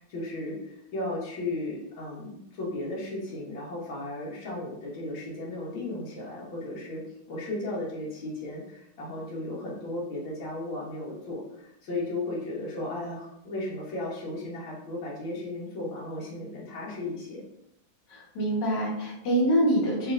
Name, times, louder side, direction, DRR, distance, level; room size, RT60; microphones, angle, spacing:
voice 1, 0.0-7.0 7.3-17.4, left 2 dB, 80° left, -5 dB, 1.8 m, -35 dB
voice 2, 18.1-20.1, right 1 dB, 65° left, -4 dB, 1.6 m, -25 dB
3.4 x 3.0 x 2.4 m, 0.79 s
omnidirectional pair, 2.2 m